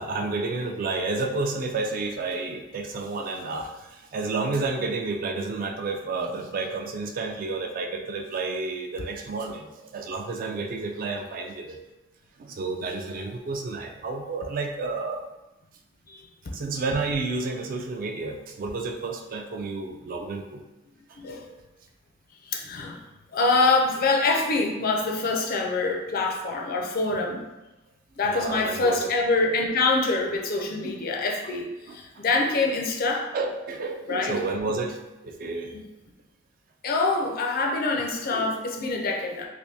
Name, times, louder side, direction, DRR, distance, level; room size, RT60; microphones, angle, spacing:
voice 1, 0.0-11.8 12.4-15.2 16.5-20.6 28.2-29.1 30.8-31.0 31.9-32.2 33.3-35.7 38.3-38.5, right 3 dB, 45° right, 3 dB, 0.3 m, -31 dB
voice 2, 22.5-23.0 23.3-27.4 28.2-33.3 34.1-34.3 36.8-39.5, left 3 dB, 45° left, 2 dB, 0.4 m, -25 dB
3.4 x 2.6 x 2.7 m, 1.0 s
head